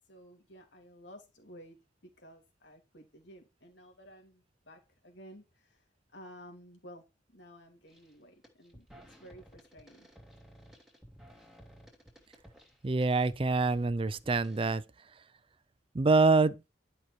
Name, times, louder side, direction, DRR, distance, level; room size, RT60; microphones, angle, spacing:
voice 1, 0.0-1.8 2.0-5.9 6.1-10.1, equal, 75° left, 3.3 m, -54 dB
sound 1, 7.9-8.1 8.4-14.7, equal, 5° right, 2.4 m, -56 dB
voice 2, 12.8-14.8 15.9-16.6, right 3 dB, 30° right, 0.5 m, -25 dB
11.0 x 5.8 x 4.5 m
head